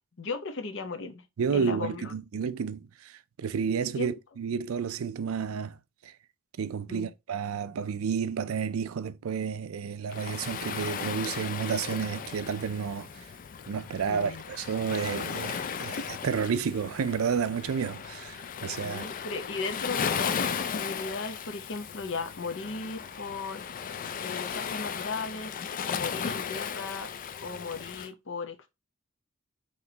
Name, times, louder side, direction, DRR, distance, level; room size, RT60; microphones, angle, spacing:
voice 1, 0.2-1.3 1.5-2.1 4.0-4.1 6.9-7.1 14.1-14.4 18.8-23.6 24.2-25.6 25.9-27.1 27.4-28.7, left 4 dB, 60° left, 0.8 m, -36 dB
voice 2, 1.4-5.8 6.0-6.1 6.6-13.3 13.7-19.1, right 6 dB, 85° right, 0.4 m, -31 dB
Waves surf, 10.1-28.1, left 7 dB, 40° left, 0.4 m, -36 dB
5.8 x 3.1 x 2.8 m
head